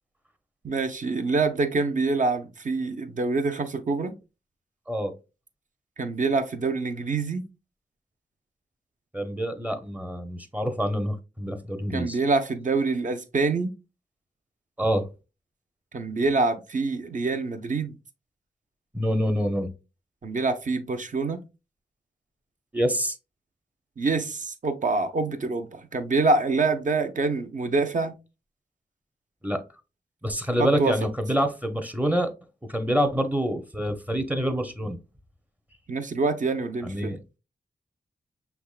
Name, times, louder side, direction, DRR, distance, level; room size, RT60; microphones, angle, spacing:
voice 1, 0.6-4.1 6.0-7.4 11.9-13.7 15.9-18.0 20.2-21.4 24.0-28.1 30.6-30.9 35.9-37.1, right 3 dB, 50° right, 0.7 m, -26 dB
voice 2, 9.1-12.2 14.8-15.1 18.9-19.7 22.7-23.1 29.4-29.6 30.2-32.3 32.7-35.0 36.8-37.2, equal, 10° right, 0.7 m, -26 dB
5.8 x 3.5 x 2.4 m
wide cardioid pair, 90°, 16 cm